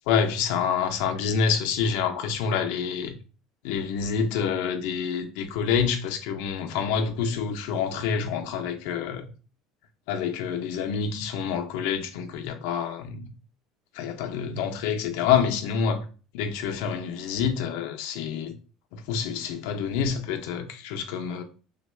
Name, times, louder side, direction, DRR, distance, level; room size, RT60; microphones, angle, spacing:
voice 1, 0.1-3.1 3.6-9.3 10.1-13.3 13.9-16.0 16.3-18.5 18.9-21.4, left 7 dB, 75° left, 0.5 m, -27 dB
3.4 x 2.2 x 3.2 m
cardioid pair, 165°, 0 cm